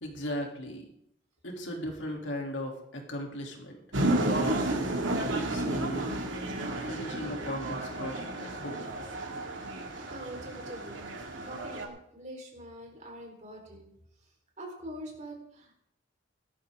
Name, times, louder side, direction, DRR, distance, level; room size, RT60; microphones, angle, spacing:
voice 1, 0.0-0.9 1.4-3.8 4.2-4.8 5.5-6.2 6.9-8.9, equal, 75° left, 1 dB, 3.0 m, -37 dB
sound 1, 3.9-11.9, right 1 dB, 85° right, 2.4 m, -32 dB
voice 2, 10.1-13.9 14.2-15.9, right 1 dB, 40° right, 0 dB, 4.1 m, -45 dB
17.5 x 12.5 x 3.7 m, 0.75 s
head